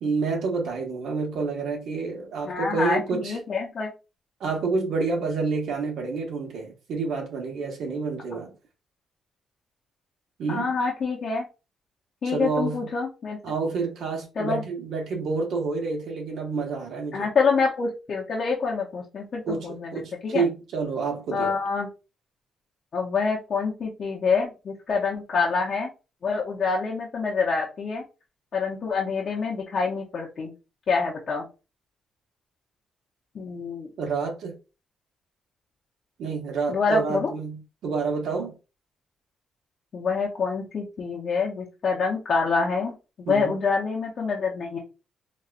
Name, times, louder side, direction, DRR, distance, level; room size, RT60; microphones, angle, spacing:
voice 1, 0.0-3.4 4.4-8.5 10.4-10.7 12.2-12.8 13.4-17.3 19.5-21.5 34.0-34.6 36.2-38.6 43.3-43.6, right 4 dB, 75° right, 1.0 m, -28 dB
voice 2, 2.4-3.9 10.5-11.4 12.2-13.4 14.4-14.6 17.1-20.4 21.3-21.9 22.9-25.9 26.2-28.0 28.5-30.5 30.9-31.5 33.3-33.9 36.7-37.3 39.9-44.8, left 4 dB, 50° left, 0.7 m, -26 dB
4.1 x 2.3 x 2.4 m
cardioid pair, 120°, 0 cm